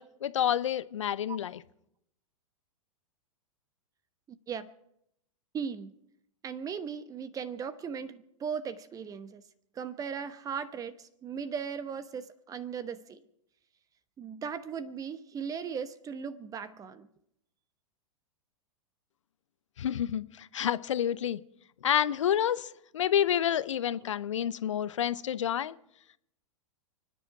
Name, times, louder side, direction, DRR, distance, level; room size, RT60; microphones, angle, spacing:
voice 1, 0.0-1.6 19.8-21.4 21.8-25.7, left 10 dB, 60° left, 17 dB, 0.7 m, -29 dB
voice 2, 5.5-5.9 6.4-9.4 9.7-13.2 14.2-17.1, right 6 dB, 20° right, 14 dB, 1.0 m, -37 dB
30.0 x 10.0 x 4.8 m, 0.78 s
figure-of-eight pair, 95°, 17 cm